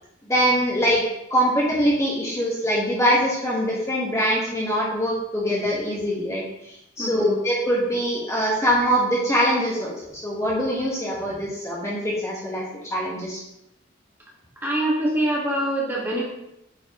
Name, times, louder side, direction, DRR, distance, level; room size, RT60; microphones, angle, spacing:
voice 1, 0.3-1.0 1.3-12.6 12.9-13.4, equal, 15° left, -5 dB, 1.2 m, -23 dB
voice 2, 7.0-7.4 14.6-16.2, right 1 dB, 10° right, -4 dB, 1.5 m, -24 dB
8.8 x 4.5 x 2.9 m, 0.83 s
head